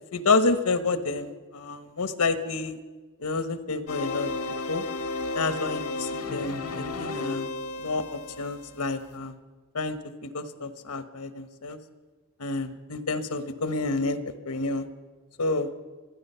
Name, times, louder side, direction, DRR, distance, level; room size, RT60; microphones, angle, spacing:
voice 1, 0.1-2.8 3.2-4.3 4.7-4.8 5.3-7.5 7.8-9.3 9.7-10.0 10.2-11.8 12.4-14.2 14.4-14.9 15.4-15.7, left 3 dB, 90° left, 11 dB, 1.1 m, -29 dB
sound 1, 3.9-9.1, left 3 dB, 70° left, 1.7 m, -33 dB
26.5 x 9.8 x 5.6 m, 1.3 s
head